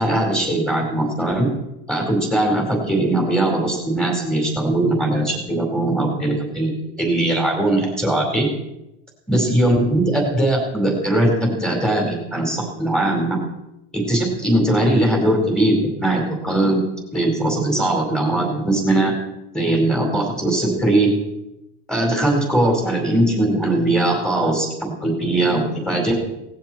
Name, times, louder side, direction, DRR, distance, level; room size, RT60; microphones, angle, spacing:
voice 1, 0.0-1.5 1.9-6.7 7.0-8.5 9.3-13.4 14.1-16.8 17.1-19.1 19.5-21.1 21.9-26.1, right 1 dB, ahead, 0 dB, 4.9 m, -20 dB
18.5 x 16.5 x 4.7 m, 0.90 s
cardioid pair, 160°, 31 cm